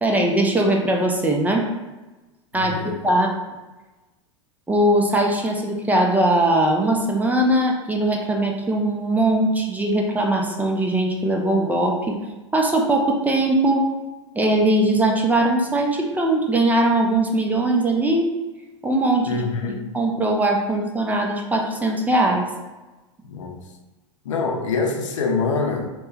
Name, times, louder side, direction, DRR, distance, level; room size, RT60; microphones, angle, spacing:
voice 1, 0.0-1.7 2.5-3.3 4.7-12.2 12.5-13.9 14.4-18.3 18.8-19.4 19.7-22.5, right 1 dB, 10° right, 1 dB, 0.4 m, -20 dB
voice 2, 2.5-3.0 19.3-19.9 23.2-23.6 24.2-25.9, left 4 dB, 85° left, 2 dB, 0.6 m, -25 dB
2.8 x 2.2 x 3.3 m, 1.1 s
hypercardioid pair, 105°, 16 cm